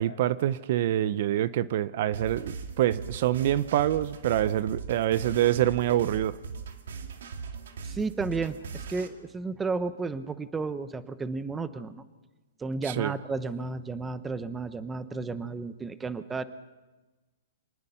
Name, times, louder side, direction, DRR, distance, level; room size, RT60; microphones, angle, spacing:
voice 1, 0.0-6.3 12.9-13.1, right 12 dB, 50° right, 16 dB, 0.7 m, -26 dB
sound 1, 2.1-9.1, right 5 dB, 75° right, 2.2 m, -39 dB
voice 2, 7.8-12.0 12.6-16.4, right 4 dB, 10° right, 13 dB, 0.9 m, -33 dB
26.5 x 19.5 x 5.7 m, 1.2 s
hypercardioid pair, 150°, 0 cm